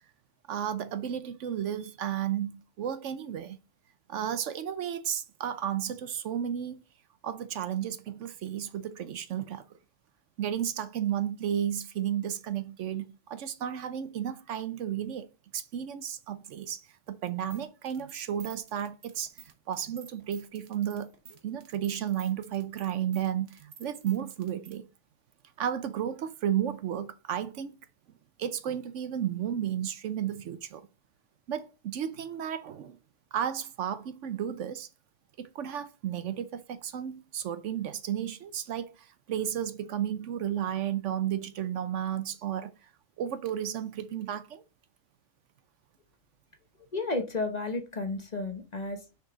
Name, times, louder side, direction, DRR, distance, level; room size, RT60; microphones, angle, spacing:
voice 1, 0.5-3.6 4.1-6.8 7.2-9.6 10.4-15.3 15.5-21.1 21.4-24.9 25.6-27.8 28.4-30.9 31.5-33.0 33.3-34.9 35.4-42.9 43.2-44.6, right 10 dB, 70° right, 0.9 m, -33 dB
sound 1, 17.3-24.8, right 7 dB, 55° right, 1.3 m, -51 dB
voice 2, 46.9-49.0, left 3 dB, 35° left, 1.0 m, -32 dB
6.3 x 5.4 x 3.8 m
omnidirectional pair, 1.4 m